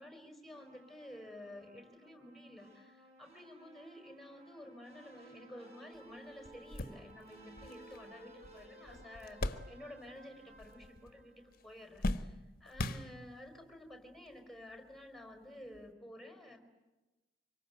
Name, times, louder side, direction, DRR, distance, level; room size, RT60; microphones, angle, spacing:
voice 1, 0.0-16.6, left 1 dB, ahead, 4 dB, 4.7 m, -52 dB
sound 1, 0.5-11.8, right 1 dB, 35° right, 6.8 m, -58 dB
sound 2, 5.9-6.0 6.4-10.2 10.5-11.2 11.5-13.6 14.3-14.4 15.7-15.9, left 2 dB, 50° left, 1.2 m, -40 dB
26.0 x 24.0 x 9.2 m, 1.1 s
head